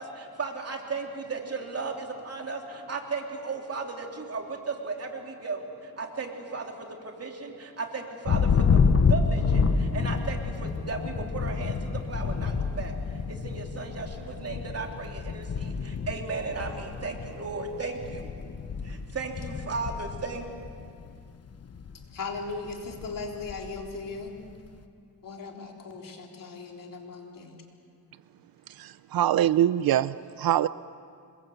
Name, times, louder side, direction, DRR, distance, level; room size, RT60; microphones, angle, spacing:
voice 1, 0.0-18.3 18.8-20.4, right 4 dB, 40° right, 2 dB, 3.2 m, -35 dB
Thunder, 8.3-21.1 21.5-22.0 22.4-23.9, left 5 dB, 40° left, 1.2 m, -28 dB
voice 2, 22.1-24.3 25.2-27.6, left 4 dB, 55° left, 1 dB, 3.9 m, -38 dB
voice 3, 28.8-30.7, right 11 dB, 65° right, 16 dB, 0.6 m, -24 dB
26.5 x 21.5 x 8.1 m, 2.3 s
cardioid pair, 110°, 39 cm